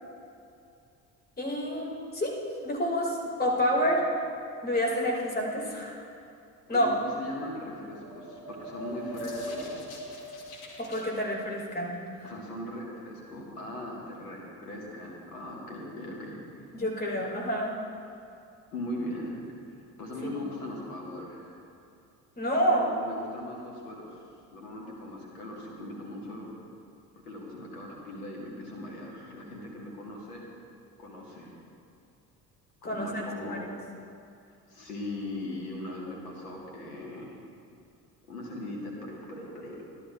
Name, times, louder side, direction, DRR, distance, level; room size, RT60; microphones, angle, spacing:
voice 1, 1.4-2.3 2.6-4.0 4.6-6.0 6.7-6.9 10.8-12.3 16.7-17.7 22.4-22.8 32.8-33.8, equal, 20° left, -2 dB, 2.6 m, -28 dB
voice 2, 6.7-10.1 12.2-16.6 18.7-19.4 20.0-21.6 22.7-24.2 24.5-26.5 27.2-30.5 31.0-31.5 32.8-33.6 34.7-37.4 38.3-39.8, left 1 dB, 75° left, -1 dB, 1.9 m, -39 dB
sound 1, 7.8-11.1, equal, 50° left, 1.6 m, -40 dB
14.5 x 11.5 x 2.5 m, 2.6 s
figure-of-eight pair, 50°, 48 cm